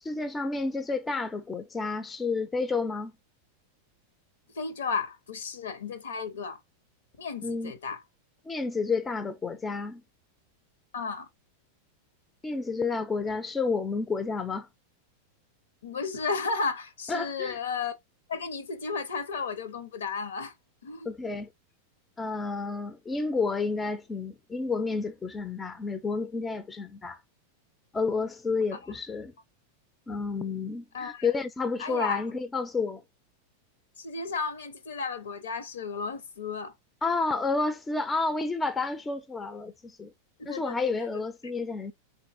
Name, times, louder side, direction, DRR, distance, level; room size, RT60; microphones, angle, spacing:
voice 1, 0.0-3.1 7.4-7.7 8.4-10.0 12.4-14.7 17.1-17.6 21.0-21.5 22.2-27.2 27.9-29.3 30.1-33.0 37.0-40.1 40.4-41.9, left 4 dB, 15° left, 0.6 m, -30 dB
voice 2, 4.5-6.6 7.2-8.0 10.9-11.3 15.8-17.9 18.3-20.5 20.8-21.1 30.9-31.3 31.8-32.2 34.0-36.7 40.4-41.1, left 4 dB, 65° left, 0.9 m, -33 dB
4.0 x 3.6 x 2.5 m
figure-of-eight pair, 90°, 0 cm